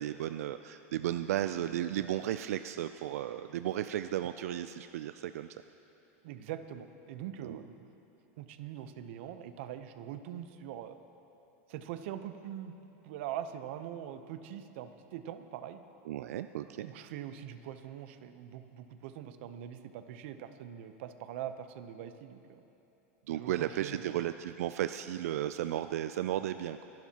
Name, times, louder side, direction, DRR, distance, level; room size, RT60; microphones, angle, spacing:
voice 1, 0.0-5.5 7.4-7.6 16.1-16.9 23.3-26.9, right 12 dB, 85° right, 10 dB, 0.4 m, -34 dB
voice 2, 6.2-7.9 8.4-11.0 11.7-12.7 13.0-15.8 16.7-22.6 23.3-24.2, right 10 dB, 55° right, 10 dB, 0.7 m, -43 dB
25.0 x 12.0 x 2.9 m, 3.0 s
supercardioid pair, 165°, 8 cm